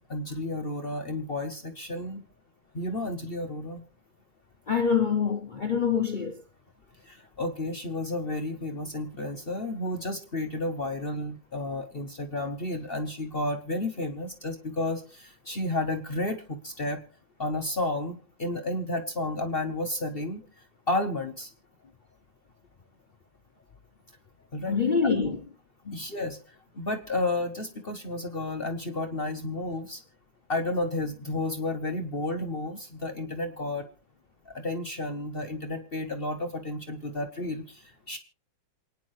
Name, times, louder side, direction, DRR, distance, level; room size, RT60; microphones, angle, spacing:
voice 1, 0.0-2.2 2.7-3.8 7.0-17.0 17.4-20.4 20.9-21.5 24.5-24.8 25.0-25.4 25.9-30.0 30.5-33.9 34.4-38.2, left 2 dB, 40° left, 1.0 m, -32 dB
voice 2, 4.7-6.4 24.7-25.4 25.9-26.0, left 6 dB, 75° left, 0.4 m, -25 dB
27.5 x 9.7 x 3.2 m
omnidirectional pair, 2.0 m